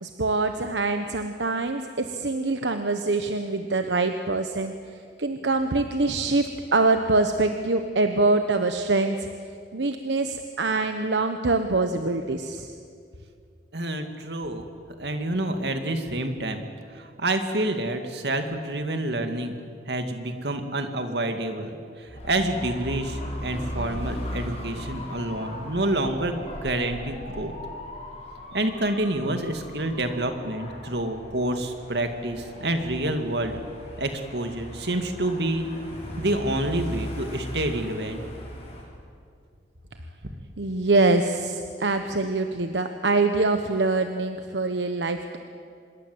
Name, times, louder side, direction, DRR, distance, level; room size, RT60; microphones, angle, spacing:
voice 1, 0.0-4.7 5.2-9.3 9.7-12.7 40.6-45.4, right 3 dB, 85° right, 7 dB, 1.1 m, -24 dB
voice 2, 13.7-14.6 15.0-16.6 16.9-19.5 19.9-27.5 28.5-33.6 34.0-35.7 36.2-38.2 40.2-40.3, right 1 dB, 70° right, 6 dB, 2.3 m, -28 dB
Dog / Motorcycle, 22.1-38.8, equal, 35° left, 6.4 m, -38 dB
25.5 x 21.5 x 8.0 m, 2.3 s
head